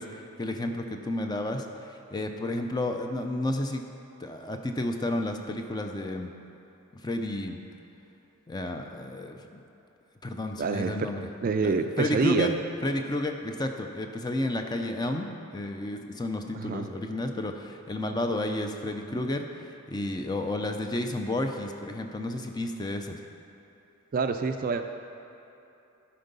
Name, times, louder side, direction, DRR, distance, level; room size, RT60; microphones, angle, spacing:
voice 1, 0.0-3.8 4.2-6.3 7.0-7.6 8.5-9.6 10.2-11.2 11.6-12.6 12.8-15.3 15.5-23.2, left 1 dB, 20° left, 4 dB, 0.5 m, -31 dB
voice 2, 10.6-11.1 11.4-12.5 16.5-16.9 24.1-24.9, right 4 dB, 40° right, 7 dB, 0.4 m, -27 dB
11.5 x 4.5 x 5.4 m, 2.9 s
head